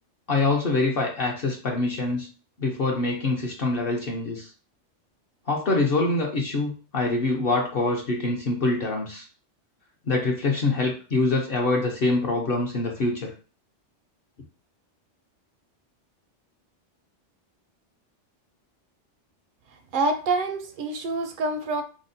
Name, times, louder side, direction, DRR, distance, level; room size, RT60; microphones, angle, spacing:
voice 1, 0.3-2.3 2.6-4.5 5.5-9.3 10.1-13.3, left 2 dB, 55° left, -1 dB, 0.8 m, -25 dB
voice 2, 19.9-21.8, right 2 dB, 60° right, 7 dB, 0.6 m, -26 dB
5.0 x 2.1 x 2.6 m, 0.37 s
omnidirectional pair, 1.2 m